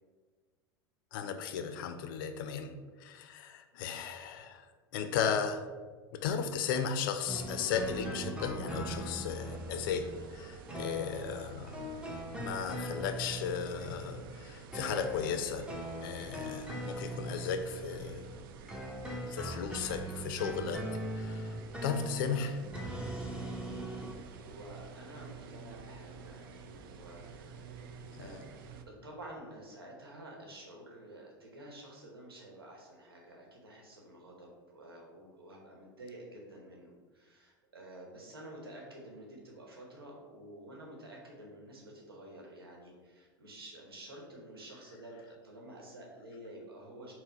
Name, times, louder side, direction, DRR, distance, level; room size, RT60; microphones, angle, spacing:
voice 1, 1.1-5.7 6.1-11.8 12.4-15.7 16.0-18.3 19.3-20.9 21.1-21.6 21.8-22.6 28.2-28.4, left 7 dB, 65° left, 9 dB, 0.4 m, -35 dB
sound 1, 7.3-18.4 18.7-24.1, right 1 dB, 10° right, 0.8 m, -40 dB
sound 2, 9.3-28.8, right 5 dB, 65° right, 0.4 m, -50 dB
voice 2, 24.4-27.3 27.7-27.9 28.2-28.4 28.8-47.1, right 1 dB, 85° right, -1 dB, 0.9 m, -50 dB
4.4 x 2.0 x 4.3 m, 1.4 s
hypercardioid pair, 80°, 12 cm